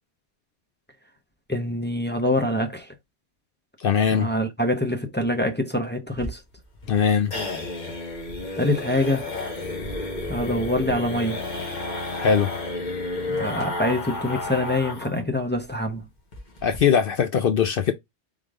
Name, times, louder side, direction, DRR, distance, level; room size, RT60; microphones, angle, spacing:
voice 1, 1.5-2.9 4.1-6.4 8.5-9.3 10.3-11.4 13.3-16.1, left 1 dB, 15° left, 0.5 m, -25 dB
voice 2, 3.8-4.3 6.9-7.3 12.2-12.5 16.6-17.9, left 7 dB, 60° left, 0.6 m, -21 dB
sound 1, 6.1-15.2 15.5-15.6 15.9-16.0 16.3-16.8, left 2 dB, 40° left, 1.4 m, -31 dB
3.7 x 3.3 x 3.5 m
omnidirectional pair, 1.2 m